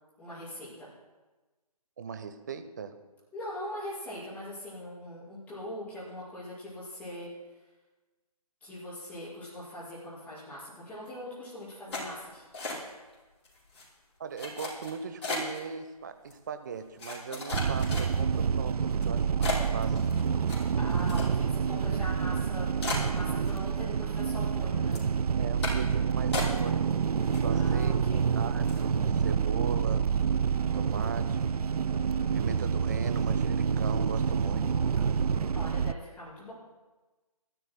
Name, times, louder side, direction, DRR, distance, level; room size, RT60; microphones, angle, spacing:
voice 1, 0.2-0.9 3.3-7.3 8.6-12.4 20.8-25.0 27.5-28.3 31.0-31.2 35.5-36.5, left 1 dB, 5° left, -11 dB, 5.3 m, -41 dB
voice 2, 2.0-3.0 14.2-18.7 19.0-20.1 23.2-23.5 25.4-26.9 27.3-28.0 28.3-30.1 30.7-31.4 32.3-34.8, right 6 dB, 30° right, 10 dB, 0.7 m, -39 dB
sound 1, 11.9-13.1 13.4-13.8 14.4-15.6 16.3-16.4 17.0-18.4 18.9-19.0 19.4-21.6 21.9-22.0 22.4-22.5 22.8-23.9 24.2-24.6 24.9-25.1 25.6-25.9 26.3-26.9 27.2-27.8 28.2-28.3 28.6-28.9, left 3 dB, 45° left, 5.9 m, -36 dB
sound 2, 17.5-35.9, right 6 dB, 70° right, 0.4 m, -28 dB
28.5 x 13.0 x 2.2 m, 1.2 s
figure-of-eight pair, 150°, 20 cm